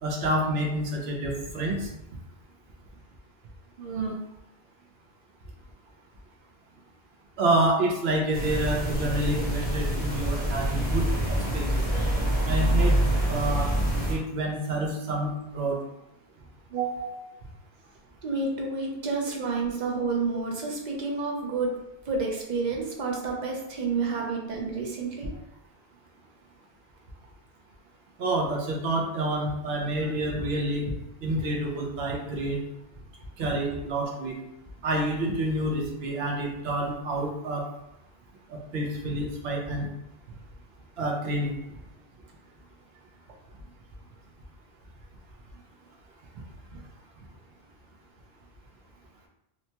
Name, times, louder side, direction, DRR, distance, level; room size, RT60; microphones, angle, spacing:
voice 1, 0.0-1.9 3.8-4.2 7.4-11.0 11.3-11.8 12.5-13.0 13.3-13.7 14.1-15.8 16.7-17.2 19.0-19.2 24.1-24.3 28.2-30.9 31.2-32.6 33.4-34.4 34.8-37.7 38.5-39.9 41.0-41.5, right 1 dB, 80° right, 0 dB, 0.9 m, -28 dB
sound 1, 8.3-14.1, right 1 dB, 10° right, 0.7 m, -26 dB
voice 2, 18.2-21.8 22.1-25.3, right 4 dB, 55° right, 0 dB, 0.6 m, -29 dB
2.9 x 2.1 x 2.8 m, 0.84 s
omnidirectional pair, 1.0 m